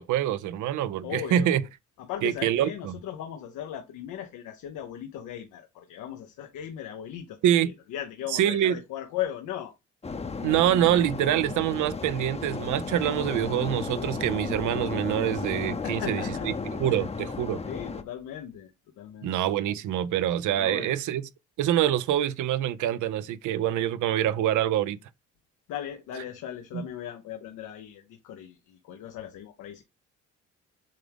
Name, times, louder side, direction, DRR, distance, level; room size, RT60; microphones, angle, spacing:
voice 1, 0.0-1.6 2.2-2.9 7.4-7.7 8.3-8.8 10.4-16.5 16.8-17.6 19.2-21.2 21.6-25.0 26.7-26.8, right 11 dB, 80° right, 0.6 m, -25 dB
voice 2, 1.0-1.6 2.0-9.7 15.8-16.5 16.9-17.0 17.7-18.7 19.0-19.3 20.6-20.9 25.7-29.8, left 10 dB, 85° left, 0.8 m, -37 dB
sound 1, 10.0-18.0, left 4 dB, 20° left, 0.7 m, -34 dB
7.5 x 3.6 x 3.5 m
cardioid pair, 90°, 30 cm